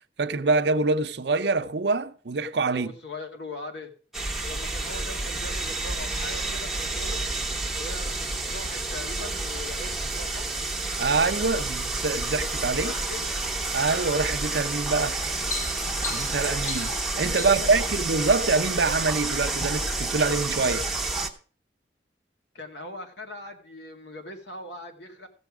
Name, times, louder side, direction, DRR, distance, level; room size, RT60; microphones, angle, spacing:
voice 1, 0.2-2.9 11.0-12.9 13.7-15.2 16.1-20.9, right 3 dB, 70° right, 0.7 m, -25 dB
voice 2, 2.7-3.9 4.4-7.3 7.8-10.5 12.8-13.4 17.6-18.0 22.5-25.3, left 2 dB, 80° left, 2.2 m, -40 dB
sound 1, 4.1-21.3, right 2 dB, ahead, 1.0 m, -29 dB
sound 2, 15.3-17.8 18.6-19.1 19.5-19.7, left 3 dB, 50° left, 2.0 m, -37 dB
15.5 x 7.0 x 4.9 m
head